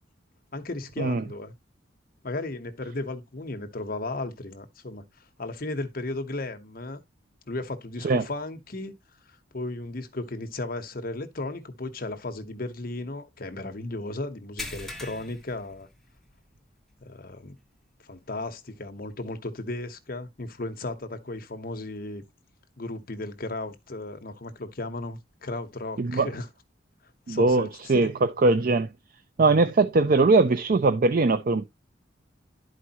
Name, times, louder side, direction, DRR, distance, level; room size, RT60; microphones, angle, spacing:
voice 1, 0.5-1.5 2.2-5.1 5.4-7.0 7.5-9.0 9.5-15.9 17.0-17.6 18.0-22.2 22.8-26.5 27.3-28.1, left 2 dB, 50° left, 1.0 m, -35 dB
sound 1, 14.6-16.5 16.8-17.0 17.5-17.6 19.3-19.4, left 2 dB, ahead, 1.2 m, -40 dB
voice 2, 26.0-26.3 27.3-28.9 29.4-31.7, right 3 dB, 45° right, 0.5 m, -21 dB
11.5 x 4.8 x 2.9 m
head